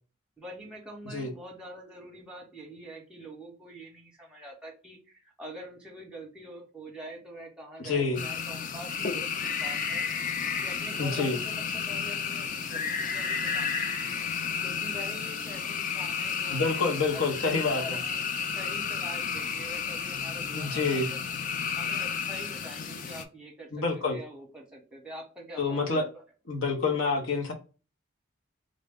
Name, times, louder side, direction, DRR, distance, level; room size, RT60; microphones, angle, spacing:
voice 1, 0.4-10.0 10.6-14.3 14.6-21.0 21.8-26.2, equal, 5° right, 0.9 m, -45 dB
voice 2, 7.8-8.2 11.0-11.4 16.5-18.0 20.5-21.1 23.7-24.2 25.6-26.0 26.5-27.5, left 4 dB, 85° left, 0.9 m, -27 dB
sound 1, 8.2-23.2, left 6 dB, 40° left, 0.3 m, -32 dB
3.8 x 2.1 x 3.5 m
head